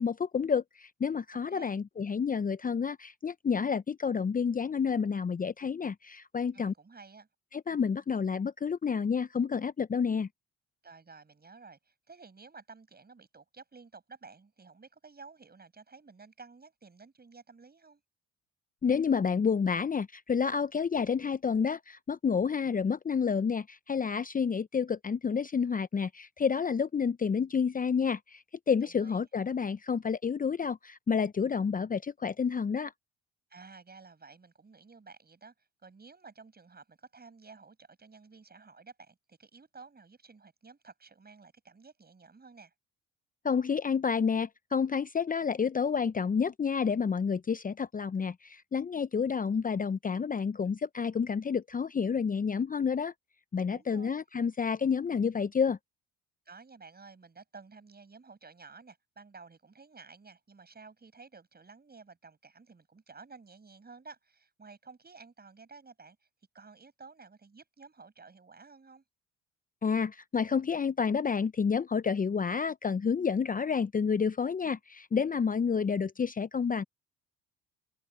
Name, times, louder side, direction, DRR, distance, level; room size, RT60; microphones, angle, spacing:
voice 1, 0.0-6.7 7.5-10.3 18.8-32.9 43.4-53.1 53.5-55.8 69.8-76.8, left 6 dB, 25° left, 0.8 m, -29 dB
voice 2, 1.3-1.8 6.5-7.3 10.8-18.0 28.8-29.3 33.5-42.7 53.7-54.2 56.5-66.3 66.5-69.0, right 4 dB, 30° right, 7.7 m, -53 dB
hypercardioid pair, 60°, 33 cm